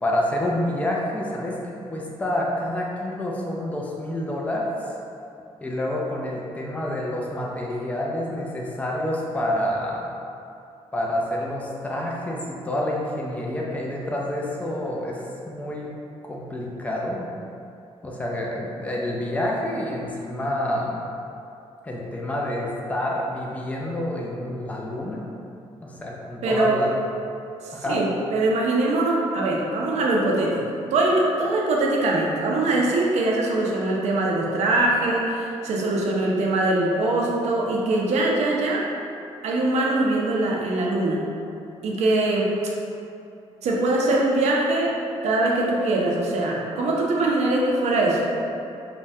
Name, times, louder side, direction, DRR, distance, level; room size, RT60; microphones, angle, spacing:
voice 1, 0.0-4.9 5.6-10.0 10.9-15.9 16.3-17.3 18.0-21.0 21.8-25.2 25.8-26.9 27.7-28.0, left 1 dB, 10° left, -2 dB, 0.4 m, -28 dB
voice 2, 26.4-26.7 27.6-30.6 30.9-38.8 39.4-41.2 41.8-42.5 43.6-45.0 45.2-48.2, right 2 dB, 80° right, -2 dB, 0.5 m, -22 dB
3.3 x 2.2 x 2.6 m, 2.6 s
cardioid pair, 80°, 11 cm